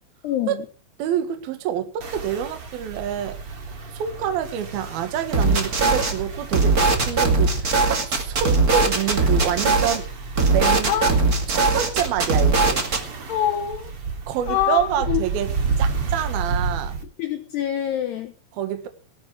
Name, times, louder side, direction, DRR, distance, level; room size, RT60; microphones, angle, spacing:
voice 1, 0.2-0.6 10.9-11.1 13.3-13.9 14.5-14.8 15.1-15.2 17.2-18.3, left 11 dB, 70° left, 6 dB, 2.7 m, -24 dB
voice 2, 1.0-3.4 3.9-10.1 10.4-11.0 11.5-12.8 14.3-15.5 15.8-17.0 18.5-18.9, right 10 dB, 60° right, 8 dB, 3.0 m, -27 dB
sound 1, 2.0-17.0, right 4 dB, 40° right, 2.5 m, -31 dB
sound 2, 5.3-6.1 6.5-10.0 10.4-13.0, right 3 dB, 75° right, 0.8 m, -20 dB
18.5 x 12.0 x 4.9 m, 0.37 s
omnidirectional pair, 5.8 m